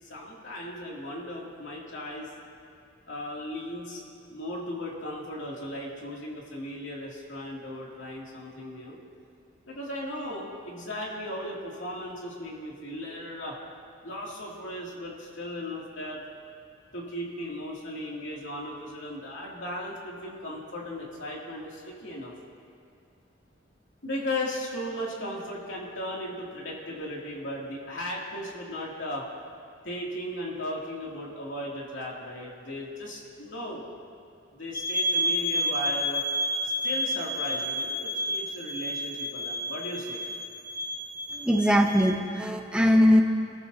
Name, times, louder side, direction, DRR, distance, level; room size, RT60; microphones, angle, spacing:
voice 1, 0.0-2.3 3.1-4.0 4.3-9.0 9.7-13.6 14.0-16.2 16.9-22.3 24.0-29.3 29.8-33.8 34.5-36.2 36.8-40.2, left 1 dB, 85° left, -4 dB, 2.6 m, -36 dB
sound 1, 34.7-42.1, equal, 20° left, 1.5 m, -30 dB
voice 2, 41.3-43.2, equal, 5° right, 2 dB, 0.7 m, -21 dB
23.0 x 14.0 x 2.8 m, 2.4 s
head